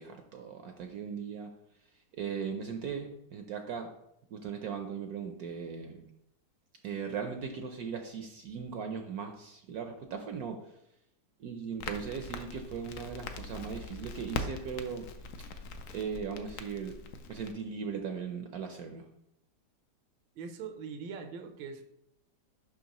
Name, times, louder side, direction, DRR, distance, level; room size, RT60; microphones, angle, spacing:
voice 1, 0.0-1.5 2.2-3.9 4.3-6.1 6.8-10.6 11.4-15.0 15.4-15.6 15.9-17.0 17.3-19.1, right 6 dB, 70° right, 5 dB, 0.9 m, -38 dB
Crackle, 11.8-17.5, left 4 dB, 80° left, 0.7 m, -42 dB
voice 2, 20.4-21.8, right 5 dB, 90° right, 6 dB, 1.5 m, -41 dB
6.3 x 5.7 x 2.9 m, 0.78 s
omnidirectional pair, 2.0 m